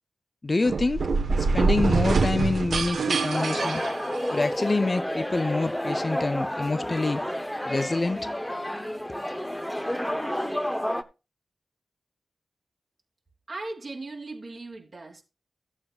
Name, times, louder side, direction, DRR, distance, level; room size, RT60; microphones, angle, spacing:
voice 1, 0.4-1.1 1.4-3.8 4.3-7.2 7.6-8.3, left 3 dB, 35° left, 0.4 m, -26 dB
sound 1, 0.6-4.6, right 4 dB, 75° right, 1.1 m, -25 dB
sound 2, 3.3-11.0, equal, 5° left, 0.8 m, -30 dB
voice 2, 13.5-15.2, right 2 dB, 40° right, 3.1 m, -38 dB
15.0 x 8.4 x 2.4 m
wide cardioid pair, 80°, 0 cm